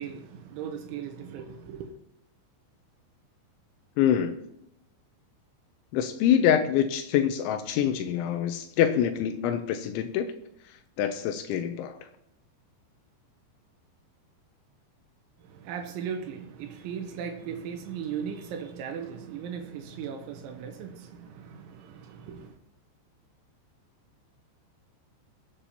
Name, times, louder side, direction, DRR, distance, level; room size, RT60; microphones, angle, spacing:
voice 1, 0.0-1.9 15.4-22.6, right 7 dB, 80° right, 3.3 m, -37 dB
voice 2, 4.0-4.4 5.9-10.3 11.0-12.0, left 9 dB, 85° left, 3.0 m, -25 dB
22.0 x 8.7 x 2.9 m
omnidirectional pair, 5.4 m